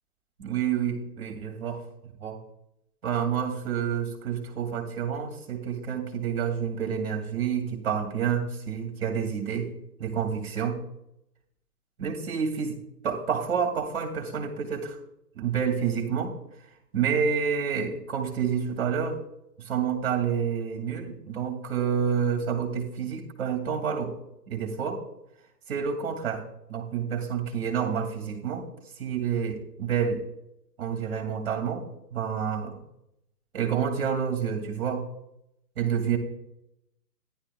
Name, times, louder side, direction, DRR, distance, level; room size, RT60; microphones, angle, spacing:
voice 1, 0.4-1.8 2.2-2.4 3.0-9.7 10.0-10.8 12.0-12.8 13.0-15.0 15.4-16.3 16.9-19.2 19.6-24.1 24.5-25.0 25.7-26.4 26.7-28.7 29.0-30.2 30.8-32.8 33.5-35.1 35.8-36.2, right 7 dB, 40° right, 4 dB, 2.3 m, -28 dB
13.0 x 11.0 x 2.2 m, 0.82 s
figure-of-eight pair, 125°, 49 cm